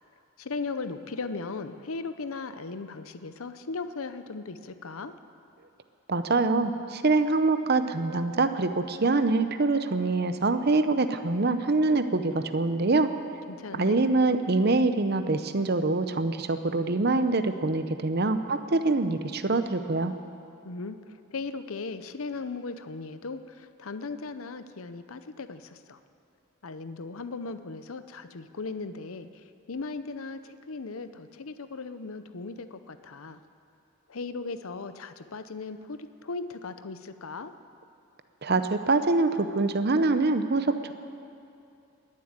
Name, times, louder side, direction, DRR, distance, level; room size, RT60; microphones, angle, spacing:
voice 1, 0.4-5.1 13.5-14.0 20.6-21.0 21.3-26.0 26.6-29.3 29.7-33.4 34.1-37.5, left 4 dB, 75° left, 11 dB, 0.7 m, -37 dB
voice 2, 6.1-13.1 13.7-20.1 38.4-40.9, right 3 dB, 45° right, 10 dB, 0.7 m, -25 dB
21.5 x 7.6 x 8.9 m, 2.7 s
head